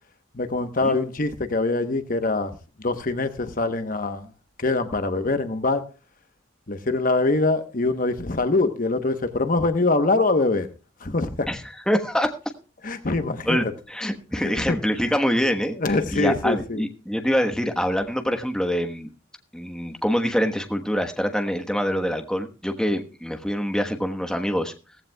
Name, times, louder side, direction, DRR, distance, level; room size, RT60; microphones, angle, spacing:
voice 1, 0.3-2.5 2.8-4.3 4.6-5.8 6.7-10.7 11.0-11.5 12.8-13.7 14.4-14.8 15.8-16.8, left 2 dB, 45° left, 1.0 m, -24 dB
voice 2, 11.5-12.3 13.5-15.8 16.1-19.1 19.5-24.7, equal, 5° left, 1.2 m, -25 dB
17.5 x 15.5 x 2.3 m
head